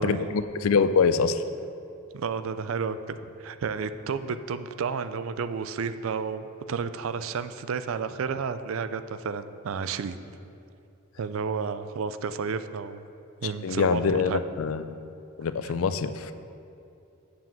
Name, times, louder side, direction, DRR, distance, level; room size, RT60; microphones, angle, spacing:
voice 1, 0.0-1.4 13.4-14.8 15.4-16.3, left 5 dB, 80° left, 12 dB, 0.4 m, -25 dB
voice 2, 2.1-10.2 11.2-13.0 13.4-14.4 15.6-15.7, right 5 dB, 70° right, 12 dB, 0.4 m, -31 dB
7.1 x 5.9 x 7.3 m, 2.7 s
head